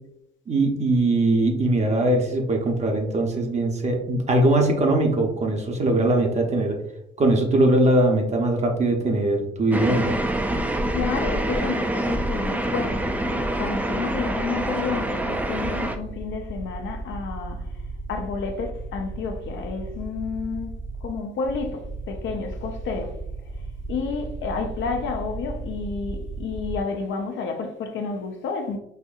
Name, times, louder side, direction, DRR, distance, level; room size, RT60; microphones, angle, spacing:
voice 1, 0.5-6.8 7.2-10.1, right 2 dB, 35° right, 0.7 m, -21 dB
sound 1, 9.7-16.0, right 1 dB, 10° right, 0.3 m, -26 dB
voice 2, 10.7-17.7 18.1-23.2 23.9-28.8, left 5 dB, 70° left, 0.6 m, -31 dB
sound 2, 12.9-26.8, right 2 dB, 85° right, 0.9 m, -35 dB
4.3 x 2.6 x 2.4 m
cardioid pair, 90°, 20 cm